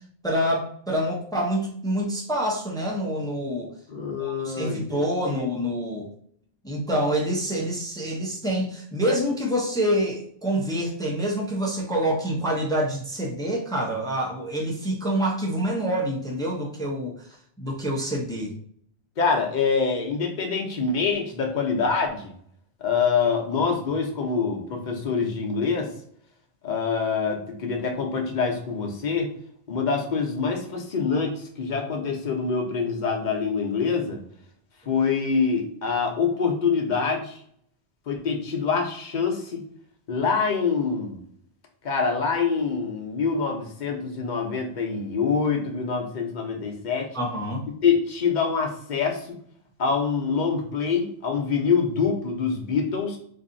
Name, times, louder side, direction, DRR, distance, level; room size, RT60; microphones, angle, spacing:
voice 1, 0.2-3.7 4.2-6.1 6.6-17.1 17.6-18.5 47.1-47.7, equal, 5° left, -2 dB, 0.5 m, -26 dB
voice 2, 3.9-5.5 19.2-22.3 22.8-25.9 26.6-29.3 29.7-34.2 34.9-37.3 38.1-39.6 40.1-41.2 41.8-47.1 47.8-49.4 49.8-53.2, left 5 dB, 50° left, 2 dB, 0.8 m, -25 dB
4.1 x 2.6 x 2.6 m, 0.64 s
omnidirectional pair, 1.1 m